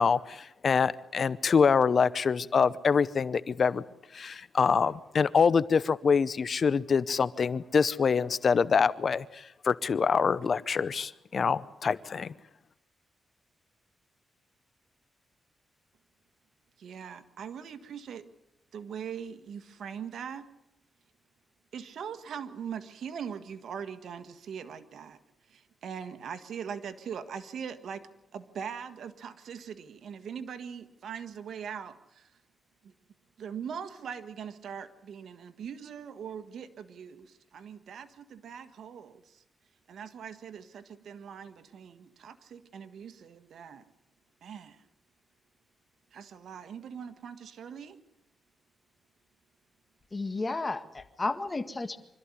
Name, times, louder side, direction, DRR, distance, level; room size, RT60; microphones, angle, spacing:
voice 1, 0.0-3.8 4.1-12.3, left 6 dB, 55° left, 0.7 m, -25 dB
voice 2, 16.8-18.3 18.7-20.4 21.7-25.2 25.5-28.0 28.3-32.3 32.8-32.9 33.4-39.4 39.9-43.8 44.4-44.8 46.1-48.0, right 7 dB, 75° right, 1.6 m, -41 dB
voice 3, 50.1-52.0, left 3 dB, 30° left, 1.7 m, -32 dB
25.5 x 13.5 x 9.8 m
cardioid pair, 85°, 0 cm